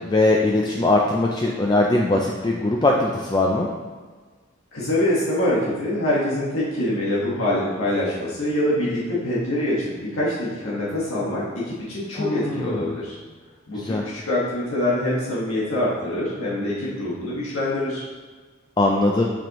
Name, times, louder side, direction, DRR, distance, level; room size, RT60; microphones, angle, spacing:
voice 1, 0.0-3.7 12.2-12.8 13.8-14.0 18.8-19.3, left 2 dB, 20° left, -1 dB, 0.4 m, -20 dB
voice 2, 4.7-13.2 13.7-18.1, left 1 dB, 85° left, -7 dB, 1.5 m, -24 dB
7.1 x 5.7 x 3.0 m, 1.4 s
head